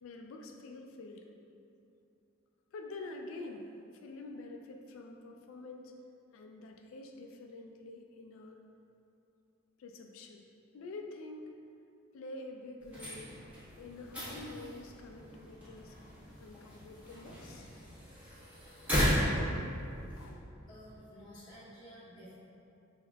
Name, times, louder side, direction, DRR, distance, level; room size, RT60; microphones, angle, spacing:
voice 1, 0.0-1.3 2.7-5.9 6.3-8.6 9.8-10.4 10.7-11.5 12.1-13.3 13.8-16.0 16.4-17.8 20.0-20.4, left 2 dB, 85° left, 3 dB, 0.3 m, -47 dB
sound 1, 12.8-20.3, equal, 10° right, 1.3 m, -36 dB
voice 2, 20.7-22.4, equal, 25° left, -10 dB, 1.3 m, -52 dB
5.4 x 3.6 x 2.2 m, 2.7 s
head